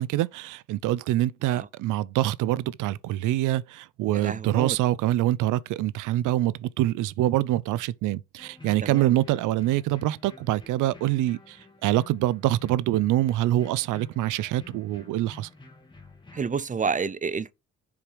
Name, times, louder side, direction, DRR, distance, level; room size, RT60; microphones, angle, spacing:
voice 1, 0.0-11.6 11.8-15.5, right 14 dB, 90° right, 0.5 m, -25 dB
voice 2, 4.1-4.8 8.8-9.1 16.3-17.5, right 5 dB, 25° right, 0.5 m, -29 dB
sound 1, 8.4-16.5, left 2 dB, 15° left, 2.6 m, -50 dB
7.1 x 4.9 x 4.8 m
cardioid pair, 90°, 30 cm